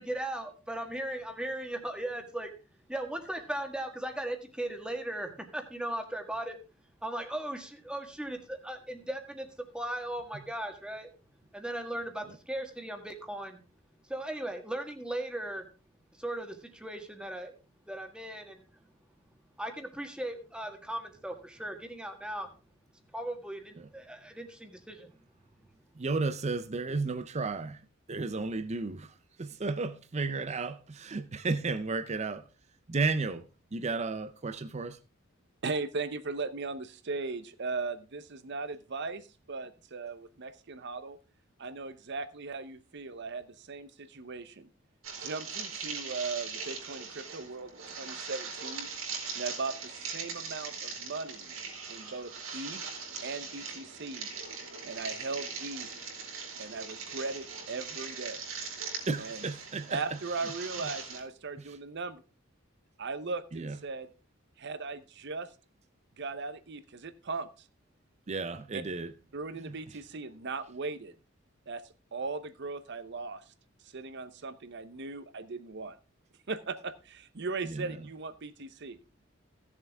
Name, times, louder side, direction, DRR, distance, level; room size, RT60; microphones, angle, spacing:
voice 1, 0.0-2.5 2.9-6.6 7.0-9.5 9.7-11.1 11.5-13.6 14.1-15.6 16.2-17.5 17.9-18.6 19.6-22.5 23.1-25.1, right 1 dB, 5° right, 1.5 m, -37 dB
voice 2, 26.0-27.8 28.1-32.5 32.9-33.4 33.7-35.0 59.1-60.5 60.8-60.9 61.6-61.8 63.5-63.8 68.3-69.1 69.6-70.0 77.6-78.1, right 3 dB, 35° right, 0.6 m, -33 dB
voice 3, 35.6-41.2 41.6-44.7 45.2-48.9 49.3-51.5 51.9-52.8 53.2-54.3 54.8-55.9 56.6-58.5 59.2-59.5 59.9-62.1 63.0-64.1 64.6-65.5 66.2-67.5 68.7-68.8 69.3-71.1 71.7-71.8 72.1-73.4 73.8-76.0 76.5-79.0, right 4 dB, 60° right, 0.8 m, -38 dB
sound 1, 45.0-61.2, right 5 dB, 85° right, 3.6 m, -40 dB
16.0 x 7.3 x 3.5 m
head